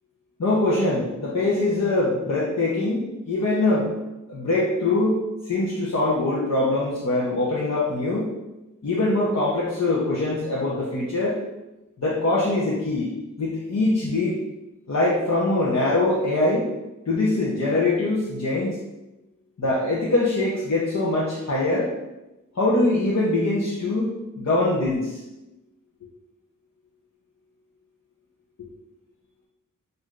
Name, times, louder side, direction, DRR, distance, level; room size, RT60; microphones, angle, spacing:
voice 1, 0.4-3.9 4.3-8.3 8.8-11.4 12.0-13.1 13.4-14.4 14.9-16.7 17.1-18.7 19.6-21.9 22.6-25.2, left 2 dB, 55° left, -7 dB, 0.8 m, -23 dB
6.2 x 2.6 x 2.4 m, 1.0 s
wide cardioid pair, 85°, 32 cm